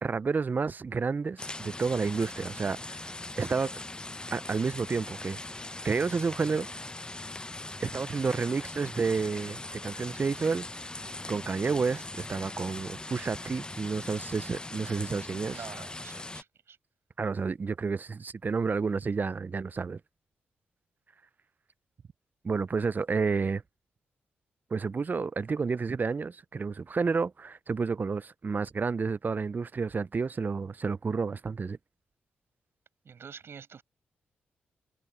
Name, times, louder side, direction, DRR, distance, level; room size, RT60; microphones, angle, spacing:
voice 1, 0.0-3.0 3.4-3.8 4.3-5.4 5.8-6.7 7.8-10.6 11.3-15.6 17.2-20.0 22.4-23.6 24.7-31.8, right 4 dB, 40° right, 0.6 m, -30 dB
sound 1, 1.4-16.4, left 2 dB, 20° left, 0.7 m, -41 dB
voice 2, 15.3-16.8 33.0-33.8, right 6 dB, 60° right, 8.0 m, -47 dB
supercardioid pair, 50°, 5 cm